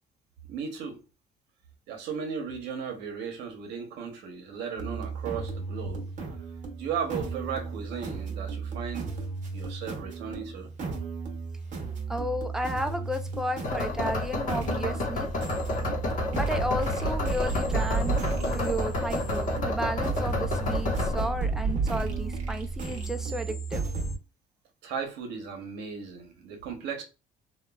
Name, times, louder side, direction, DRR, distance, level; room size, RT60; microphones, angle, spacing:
voice 1, 0.5-1.0 1.9-6.1 6.8-9.1 9.5-10.7 24.8-27.0, right 6 dB, 85° right, 0.8 m, -36 dB
sound 1, 4.8-24.1, right 4 dB, 50° right, 0.9 m, -33 dB
voice 2, 12.1-15.3 16.3-18.2 18.5-23.8, equal, 5° right, 0.4 m, -33 dB
sound 2, 13.6-21.2, left 3 dB, 50° left, 0.8 m, -30 dB
2.9 x 2.2 x 2.2 m
cardioid pair, 110°, 17 cm